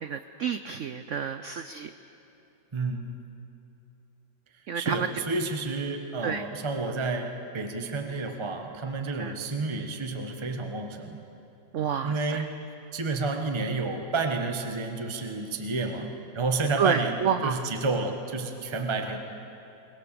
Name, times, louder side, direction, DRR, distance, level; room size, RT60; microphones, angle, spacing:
voice 1, 0.0-1.9 4.7-5.1 6.2-6.4 9.2-9.4 11.7-12.4 16.8-17.6, right 7 dB, 90° right, 10 dB, 0.6 m, -29 dB
voice 2, 2.7-3.0 4.7-11.2 12.0-12.5 12.9-19.2, right 3 dB, 20° right, 4 dB, 1.1 m, -30 dB
22.5 x 20.0 x 6.9 m, 2.9 s
omnidirectional pair, 2.0 m